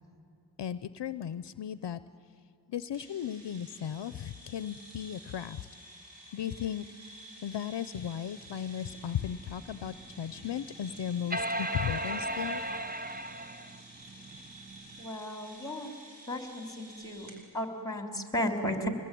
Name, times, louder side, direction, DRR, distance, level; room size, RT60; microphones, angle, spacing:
voice 1, 0.6-2.0 2.7-5.7 6.3-12.6, left 9 dB, 70° left, 15 dB, 0.6 m, -36 dB
sound 1, 2.9-17.4, right 1 dB, 85° right, 4.6 m, -51 dB
sound 2, 8.6-15.1, right 1 dB, 20° right, 0.9 m, -37 dB
voice 2, 15.0-15.9 16.3-17.3 17.5-18.9, left 1 dB, 10° left, 4 dB, 3.6 m, -34 dB
25.0 x 21.0 x 9.2 m, 2.6 s
cardioid pair, 55°, 43 cm